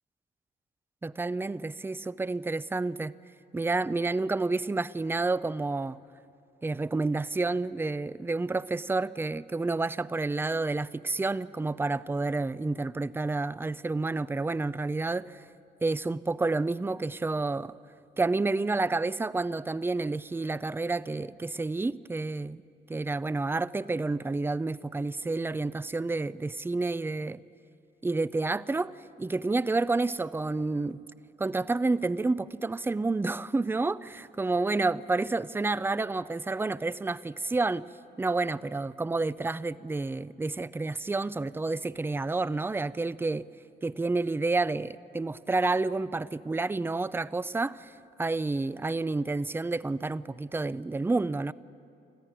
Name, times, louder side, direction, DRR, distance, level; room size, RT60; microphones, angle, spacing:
voice 1, 1.0-3.1 3.5-6.0 6.6-15.4 15.8-17.7 18.2-22.6 22.9-27.4 28.0-28.9 29.2-31.0 31.4-37.8 38.2-43.5 43.8-47.9 48.2-51.5, right 3 dB, 10° right, 0.5 m, -29 dB
25.5 x 14.5 x 9.2 m
cardioid pair, 90°, 20 cm